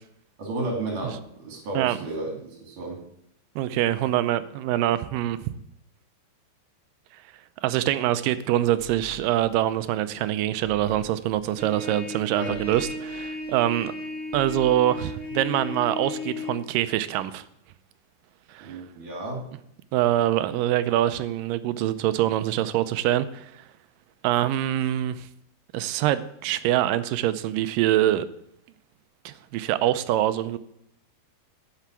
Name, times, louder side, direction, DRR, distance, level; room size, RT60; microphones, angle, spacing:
voice 1, 0.4-3.0 12.2-12.6 18.6-19.4, right 2 dB, 70° right, 1 dB, 4.2 m, -33 dB
voice 2, 3.6-5.5 7.1-7.2 7.6-13.9 14.3-17.4 18.5-18.8 19.9-23.6 24.2-25.3 25.7-28.3 29.3-30.6, right 13 dB, 85° right, 14 dB, 2.3 m, -24 dB
sound 1, 8.8-14.0 14.2-16.0, left 6 dB, 80° left, 2.7 m, -49 dB
Trumpet, 11.6-16.6, left 2 dB, 5° right, 1.0 m, -35 dB
12.0 x 5.8 x 8.1 m, 0.75 s
omnidirectional pair, 3.8 m